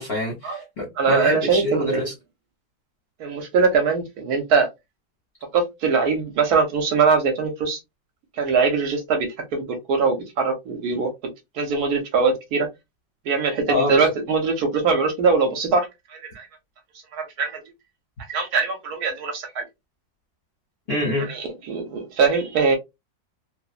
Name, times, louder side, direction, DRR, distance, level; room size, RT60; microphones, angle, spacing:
voice 1, 0.0-2.1 13.7-13.9 20.9-21.3, left 2 dB, 50° left, 0.7 m, -26 dB
voice 2, 1.0-2.0 3.2-4.7 5.5-7.8 8.3-11.1 11.5-12.7 13.3-16.5 17.1-17.6 18.3-19.6 21.2-22.8, right 5 dB, 65° right, 1.1 m, -22 dB
3.0 x 2.0 x 2.3 m
omnidirectional pair, 1.9 m